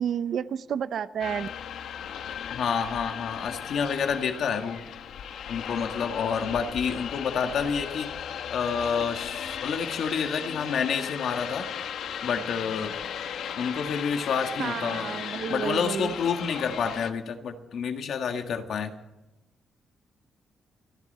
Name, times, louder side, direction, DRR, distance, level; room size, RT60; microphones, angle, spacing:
voice 1, 0.0-1.5 14.6-16.2, right 8 dB, 65° right, 0.7 m, -30 dB
sound 1, 1.2-17.1, left 8 dB, 85° left, 1.1 m, -36 dB
voice 2, 2.5-4.9 5.5-8.1 8.5-11.7 12.2-12.9 13.6-15.1 15.5-18.9, left 6 dB, 70° left, 1.8 m, -29 dB
27.5 x 11.5 x 4.2 m
cardioid pair, 130°, 0 cm